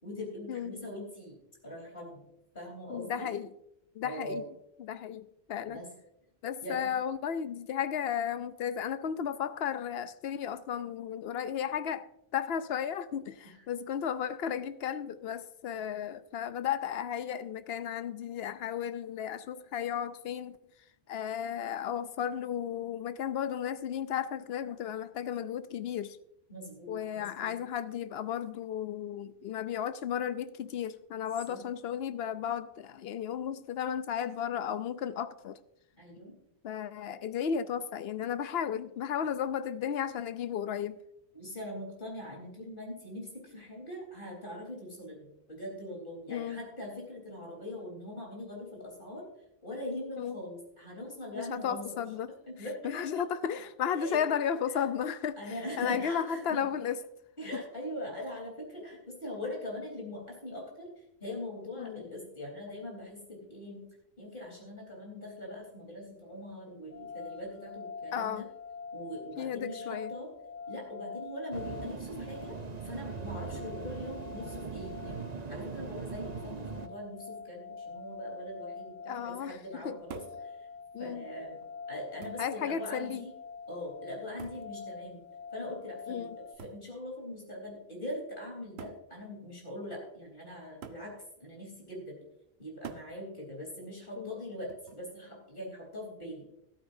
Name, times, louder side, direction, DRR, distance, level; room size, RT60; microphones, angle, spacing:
voice 1, 0.0-1.4 1.6-2.2 2.5-3.3 4.0-4.4 5.7-5.9 6.6-6.9 13.4-13.5 26.5-27.6 31.5-31.6 36.0-36.3 41.3-49.2 49.6-51.9 52.5-52.8 53.1-53.2 53.9-54.2 54.7-54.9 55.4-56.7 57.4-60.9 61.2-63.9 64.2-68.4 68.9-70.3 70.7-72.6 72.8-80.7 81.0-83.3 83.7-85.2 85.5-91.1 91.4-92.2 92.6-96.4, left 1 dB, 55° left, 4.0 m, -42 dB
voice 2, 2.9-3.5 3.9-4.4 4.8-5.8 6.4-12.1 12.3-20.6 21.1-26.2 26.9-35.6 36.6-41.0 46.3-46.6 50.2-50.4 51.3-52.3 52.8-55.4 55.8-57.0 57.5-57.6 61.8-62.0 68.1-68.4 69.4-70.1 79.1-80.0 80.9-81.2 82.4-83.3 86.1-86.4 94.2-94.3, left 8 dB, 75° left, 0.9 m, -34 dB
sound 1, 66.9-86.6, left 5 dB, 20° left, 0.7 m, -46 dB
sound 2, 71.5-76.9, right 5 dB, 45° right, 0.9 m, -40 dB
sound 3, 80.1-80.5 81.5-81.6 82.2-82.6 84.4-84.8 86.6-86.9 87.9-88.0 88.8-89.1 90.8-91.1 92.8-93.2 94.7-95.1, right 7 dB, 90° right, 1.0 m, -46 dB
14.5 x 13.0 x 2.7 m
omnidirectional pair, 1.0 m